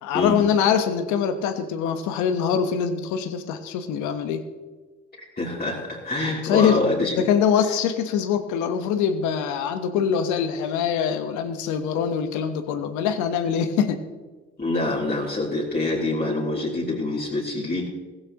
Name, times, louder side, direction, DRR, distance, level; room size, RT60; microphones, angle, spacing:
voice 1, 0.0-4.5 6.4-6.8 7.2-14.0, left 7 dB, 80° left, 9 dB, 1.2 m, -23 dB
voice 2, 5.4-7.1 14.6-17.9, left 2 dB, 30° left, -6 dB, 3.2 m, -25 dB
15.5 x 15.0 x 3.0 m, 1.3 s
hypercardioid pair, 55°, 29 cm